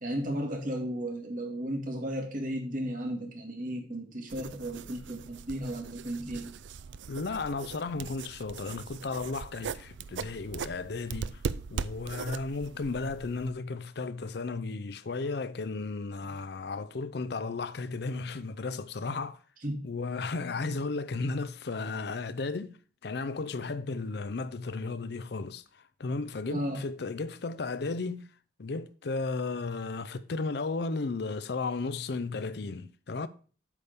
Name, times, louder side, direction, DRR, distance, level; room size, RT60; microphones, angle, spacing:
voice 1, 0.0-6.5 16.2-16.4 19.6-19.9 26.5-26.8, equal, 45° right, 1.8 m, -34 dB
sound 1, 4.3-13.5, right 6 dB, 80° right, 0.4 m, -40 dB
voice 2, 7.1-11.4 11.7-19.4 19.8-22.8 23.0-28.3 28.6-33.3, left 3 dB, 60° left, 0.5 m, -34 dB
8.3 x 3.6 x 6.7 m
head